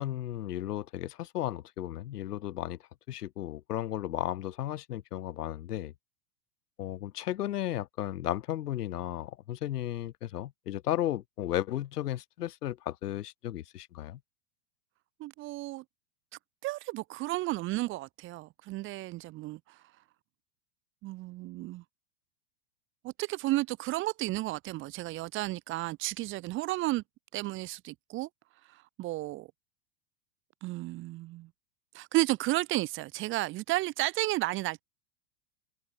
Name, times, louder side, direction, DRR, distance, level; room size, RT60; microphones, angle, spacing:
voice 1, 0.0-2.8 3.1-5.9 6.8-14.2, left 13 dB, 65° left, 6.4 m, -34 dB
voice 2, 15.2-15.8 16.6-19.8 21.0-21.8 23.0-27.0 27.3-28.3 28.7-29.5 30.6-31.5 31.9-34.8, right 18 dB, 25° right, 4.1 m, -33 dB
supercardioid pair, 175°, 50 cm